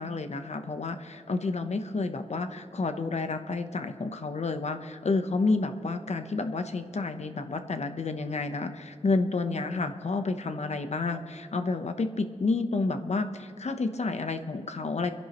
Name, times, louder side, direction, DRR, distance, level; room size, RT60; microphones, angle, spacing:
voice 1, 0.0-15.1, left 3 dB, 65° left, 8 dB, 0.8 m, -30 dB
29.0 x 11.0 x 3.0 m, 2.2 s
wide cardioid pair, 80°, 13 cm